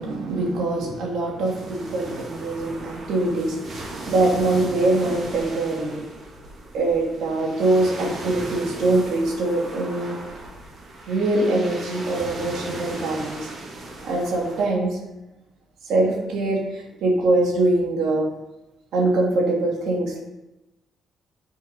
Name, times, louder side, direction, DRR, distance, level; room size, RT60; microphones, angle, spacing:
voice 1, 0.0-6.0 6.7-10.2 11.1-13.5 14.0-15.0 15.8-18.3 18.9-20.2, right 2 dB, 80° right, -1 dB, 2.9 m, -23 dB
sound 1, 1.4-14.6, right 2 dB, 50° right, 2.8 m, -37 dB
8.0 x 6.5 x 5.6 m, 0.96 s
cardioid pair, 90°, 0 cm